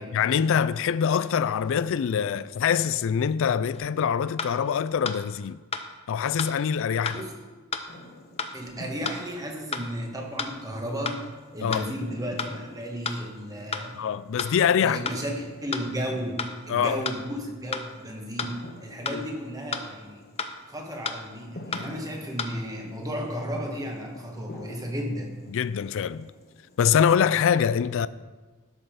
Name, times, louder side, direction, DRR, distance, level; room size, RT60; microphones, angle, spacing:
voice 1, 0.1-5.6 6.1-7.2 11.6-11.9 14.0-15.0 16.7-17.0 19.1-19.2 25.5-26.3 26.8-28.1, left 7 dB, 65° left, 0.3 m, -24 dB
sound 1, 3.7-3.9 4.4-4.5 5.0-5.2 5.7-5.9 6.4-6.5 7.1-7.2 7.7-7.9 8.4-8.5 9.0-9.2 9.7-9.9 10.4-10.5 11.1-11.2 11.7-11.8 12.4-12.5 13.0-13.2 13.7-13.9 14.4-14.5 15.1-15.2 15.7-15.9 16.4-16.5 17.0-17.2 17.7-17.9 18.4-18.5 19.1-19.2 19.7-19.9 20.4-20.5 21.0-21.2 21.7-21.9 22.4-22.5, left 5 dB, 30° left, 0.7 m, -31 dB
sound 2, 7.9-27.3, left 1 dB, 45° left, 1.1 m, -48 dB
voice 2, 8.5-11.2 11.5-14.0 14.7-20.2 20.7-25.4, equal, 15° right, 1.4 m, -34 dB
12.0 x 5.5 x 5.7 m
head